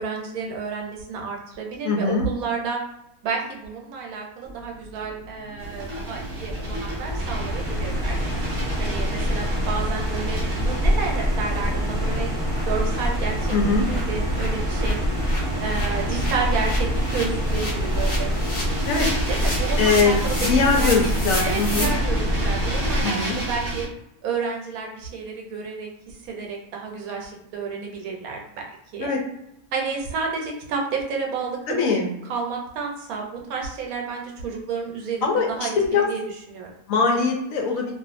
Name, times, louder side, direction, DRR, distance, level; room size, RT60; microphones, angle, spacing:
voice 1, 0.0-2.8 3.2-8.2 8.8-12.4 12.7-13.5 13.9-15.0 15.6-18.3 19.3-21.1 21.4-23.9 24.2-25.9 26.2-29.1 29.7-31.8 32.3-36.2 36.5-36.7, right 5 dB, 80° right, 0 dB, 1.1 m, -30 dB
voice 2, 1.8-2.3 13.5-13.8 18.9-19.1 19.8-20.2 20.4-21.9 23.0-23.4 29.0-29.2 31.7-32.2 35.2-36.1 36.9-37.9, left 4 dB, 75° left, 1 dB, 1.0 m, -22 dB
sound 1, 4.4-23.0, equal, 25° right, 0.9 m, -26 dB
sound 2, 5.6-23.9, right 2 dB, 60° right, 0.9 m, -33 dB
sound 3, 9.7-9.9 10.2-10.3 10.6-10.8 11.1-11.2 11.6-11.7 11.9-21.8, left 1 dB, 35° left, 0.6 m, -35 dB
2.5 x 2.4 x 2.5 m, 0.80 s
omnidirectional pair, 1.5 m